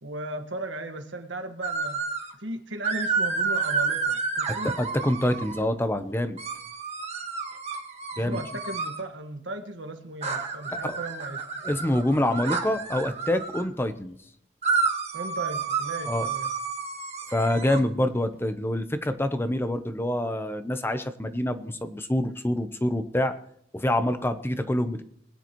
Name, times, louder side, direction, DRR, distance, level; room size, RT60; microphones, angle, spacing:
voice 1, 0.0-2.0 2.4-4.7 8.2-11.5 15.1-16.5, right 2 dB, 90° right, 6 dB, 1.6 m, -36 dB
sound 1, 1.6-2.3 2.8-5.6 6.4-9.0 10.2-13.7 14.6-17.8, right 5 dB, 35° right, 1.6 m, -30 dB
voice 2, 4.5-6.4 8.2-8.4 10.7-11.0 11.6-14.2 16.1-16.3 17.3-23.3 23.7-25.0, left 1 dB, 15° left, 9 dB, 0.7 m, -26 dB
21.0 x 9.9 x 3.0 m, 0.72 s
head